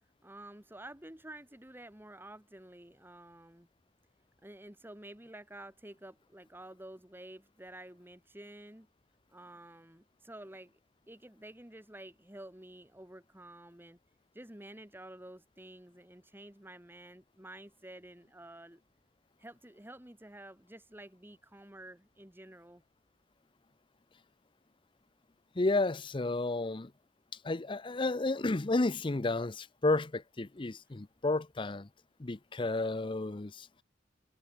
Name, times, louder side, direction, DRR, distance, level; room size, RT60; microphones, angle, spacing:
voice 1, 0.2-3.7 4.4-8.9 9.3-10.8 11.1-14.0 14.3-18.8 19.4-22.8, right 1 dB, 10° right, 1.8 m, -50 dB
voice 2, 25.6-26.9 27.4-31.9 32.2-33.7, left 2 dB, 25° left, 0.6 m, -32 dB
head